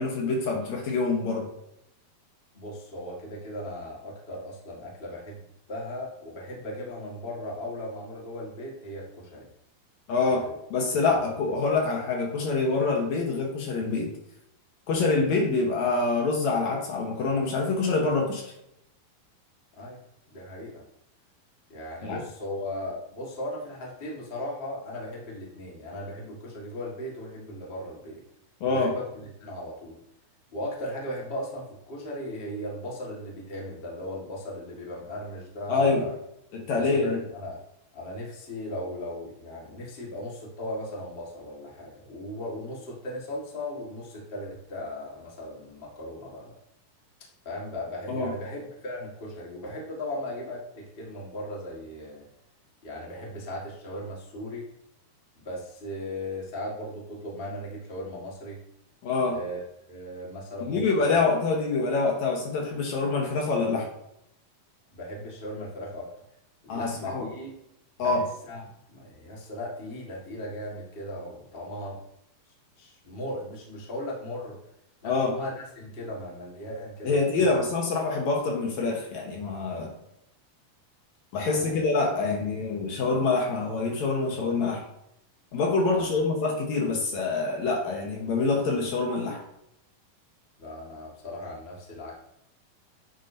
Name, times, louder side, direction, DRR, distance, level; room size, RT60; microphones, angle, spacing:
voice 1, 0.0-1.5 10.1-14.1 14.9-18.4 22.0-22.2 28.6-28.9 35.7-36.0 36.5-37.2 48.1-48.3 59.0-59.4 60.6-63.9 66.7-67.3 68.0-68.3 75.0-75.3 77.0-79.9 81.3-84.8 85.5-89.4, left 3 dB, 65° left, 0 dB, 2.1 m, -26 dB
voice 2, 2.5-5.4 5.7-9.5 10.4-10.5 10.9-11.1 11.8-11.9 19.8-20.0 20.3-20.8 21.7-28.2 28.6-30.0 30.5-36.1 36.8-37.6 37.9-46.6 47.4-52.2 52.8-54.7 55.3-58.6 59.3-59.6 59.9-61.2 64.9-66.1 66.6-67.5 68.0-72.0 72.8-74.6 75.0-77.5 81.4-81.8 82.1-82.3 85.9-86.2 90.6-92.1, left 1 dB, 80° left, -3 dB, 0.5 m, -37 dB
9.9 x 4.8 x 2.7 m, 0.78 s
omnidirectional pair, 4.3 m